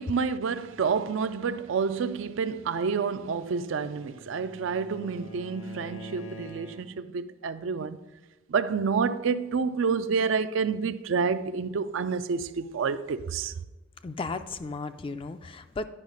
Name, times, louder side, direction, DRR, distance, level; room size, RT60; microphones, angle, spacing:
voice 1, 0.0-8.0 8.5-13.5, right 5 dB, 70° right, 0.4 m, -29 dB
Bowed string instrument, 3.3-7.2, right 2 dB, 70° left, 0.9 m, -46 dB
voice 2, 14.0-15.8, left 3 dB, 25° left, 0.3 m, -35 dB
9.8 x 5.5 x 5.1 m
head